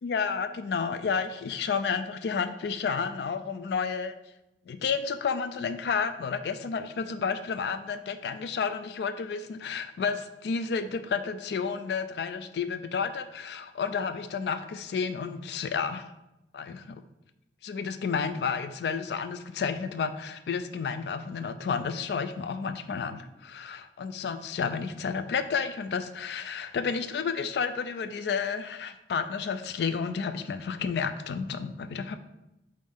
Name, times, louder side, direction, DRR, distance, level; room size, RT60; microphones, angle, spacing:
voice 1, 0.0-4.1 4.7-16.0 16.5-16.8 17.6-32.2, left 6 dB, 65° left, 10 dB, 0.3 m, -31 dB
5.3 x 2.6 x 3.4 m, 0.90 s
head